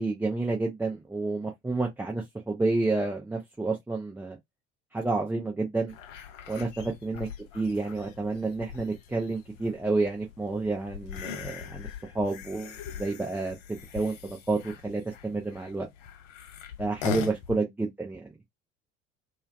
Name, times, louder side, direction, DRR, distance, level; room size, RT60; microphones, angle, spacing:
voice 1, 0.0-4.4 4.9-5.9 6.5-7.3 7.5-11.9 12.1-13.6 13.9-15.9 16.8-18.3, right 3 dB, 5° right, 0.4 m, -30 dB
sound 1, 5.9-17.6, left 9 dB, 65° left, 0.7 m, -41 dB
2.2 x 2.2 x 2.5 m
figure-of-eight pair, 60°, 40 cm